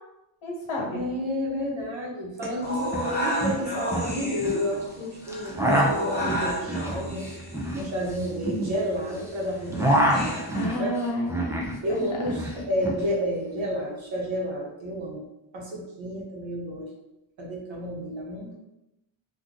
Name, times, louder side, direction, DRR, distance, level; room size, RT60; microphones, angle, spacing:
voice 1, 0.4-1.0 10.5-12.0, left 1 dB, 75° left, -2 dB, 1.1 m, -31 dB
voice 2, 0.9-7.3 7.7-10.4 10.8-11.0 11.8-15.3 15.5-16.9 17.4-18.6, equal, 65° right, -2 dB, 1.1 m, -30 dB
sound 1, 2.4-2.5 2.7-3.1 3.4-4.6 5.3-9.2 9.5-11.8 12.1-13.0, right 1 dB, 5° right, 0.3 m, -26 dB
sound 2, 2.6-10.6, equal, 20° left, 0.9 m, -33 dB
2.5 x 2.4 x 3.7 m, 0.89 s
cardioid pair, 110°, 49 cm